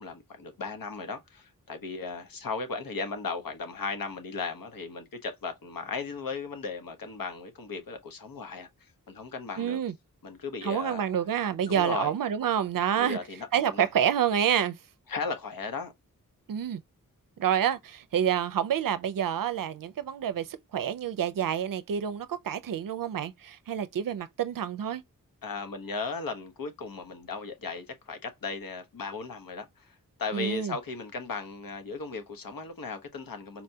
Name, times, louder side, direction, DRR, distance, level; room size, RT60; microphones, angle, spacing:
voice 1, 0.0-9.8 10.2-11.1 11.7-12.1 13.0-13.9 15.1-15.9 25.4-33.6, left 4 dB, 80° left, 1.0 m, -36 dB
voice 2, 9.6-9.9 10.6-13.2 13.5-14.8 16.5-16.8 17.4-25.0 30.3-30.7, right 9 dB, 70° right, 0.5 m, -28 dB
4.4 x 2.7 x 2.2 m
wide cardioid pair, 85°, 34 cm